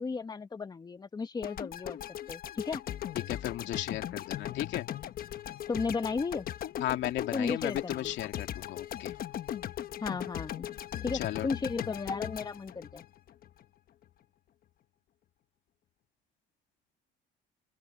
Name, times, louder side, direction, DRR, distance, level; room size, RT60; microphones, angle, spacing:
voice 1, 0.0-2.0 2.3-2.8 5.7-6.5 7.3-8.1 10.0-10.7 11.0-13.0, left 4 dB, 20° left, 1.3 m, -34 dB
sound 1, 1.4-13.6, left 11 dB, 50° left, 1.1 m, -39 dB
voice 2, 3.3-4.9 6.8-9.1 11.1-11.5, left 14 dB, 70° left, 2.6 m, -35 dB
open air
cardioid pair, 140°, 20 cm